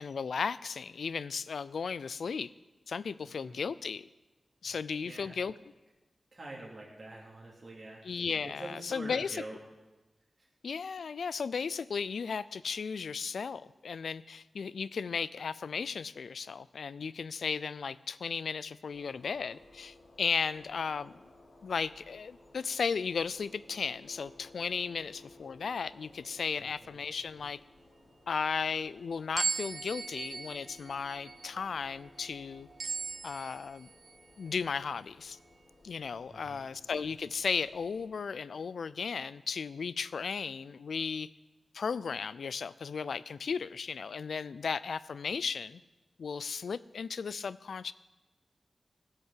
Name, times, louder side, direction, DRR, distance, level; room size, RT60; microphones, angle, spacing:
voice 1, 0.0-2.5 2.9-4.1 4.6-5.5 8.0-9.4 10.6-21.3 21.6-27.6 28.3-32.7 33.2-33.9 34.4-35.4 35.8-41.3 41.7-45.8 46.2-47.9, left 5 dB, 85° left, 18 dB, 0.4 m, -35 dB
voice 2, 3.2-3.6 4.6-4.8 5.0-5.4 6.3-8.2 8.4-9.6 10.4-10.5 26.6-27.0 36.3-36.7, right 2 dB, 45° right, -4 dB, 3.0 m, -46 dB
sound 1, 18.9-38.1, left 2 dB, 65° left, 2.3 m, -58 dB
sound 2, 29.4-34.2, right 5 dB, 65° right, 0.3 m, -38 dB
16.0 x 6.5 x 7.4 m, 1.1 s
wide cardioid pair, 75°, 0 cm